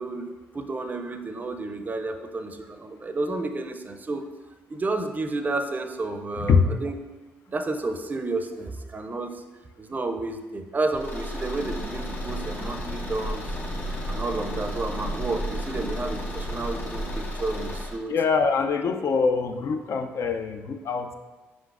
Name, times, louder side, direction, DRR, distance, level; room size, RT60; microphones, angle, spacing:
voice 1, 0.0-4.3 4.7-7.0 7.5-9.4 9.8-13.6 13.9-18.2, right 2 dB, 30° right, 7 dB, 0.5 m, -31 dB
Car / Engine, 10.9-18.0, left 1 dB, 35° left, 1.1 m, -34 dB
sound 1, 11.5-17.2, right 2 dB, 90° left, 1.0 m, -36 dB
voice 2, 18.1-21.1, left 5 dB, 55° left, 7 dB, 0.4 m, -24 dB
4.8 x 3.8 x 2.4 m, 1.2 s
hypercardioid pair, 50°, 6 cm